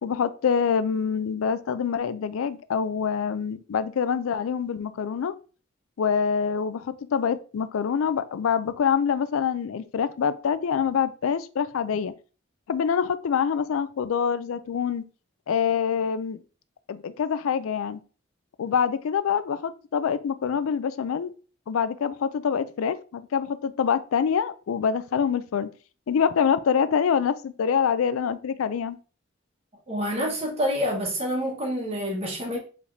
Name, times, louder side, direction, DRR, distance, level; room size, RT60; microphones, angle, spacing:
voice 1, 0.0-5.3 6.0-12.1 12.7-15.1 15.5-16.4 16.9-18.0 18.6-21.3 21.7-25.7 26.1-29.0, left 7 dB, 90° left, 0.4 m, -25 dB
voice 2, 29.9-32.6, equal, 30° right, 1.2 m, -27 dB
4.9 x 3.3 x 2.6 m
head